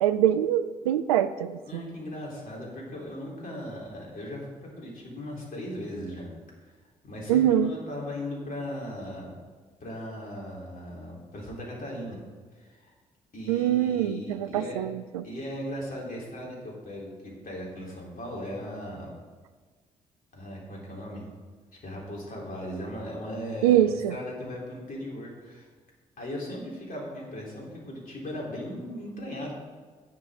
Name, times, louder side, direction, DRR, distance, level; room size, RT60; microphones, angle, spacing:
voice 1, 0.0-1.8 7.3-7.7 13.5-15.3 23.6-24.2, right 11 dB, 80° right, 13 dB, 0.4 m, -24 dB
voice 2, 1.7-6.3 6.6-6.7 7.0-9.3 9.8-12.2 12.5-12.9 13.3-14.8 15.2-19.1 20.3-21.3 21.8-25.7 26.2-29.5, equal, 50° left, -3 dB, 4.0 m, -38 dB
13.5 x 9.6 x 3.8 m, 1.5 s
figure-of-eight pair, 40°, 19 cm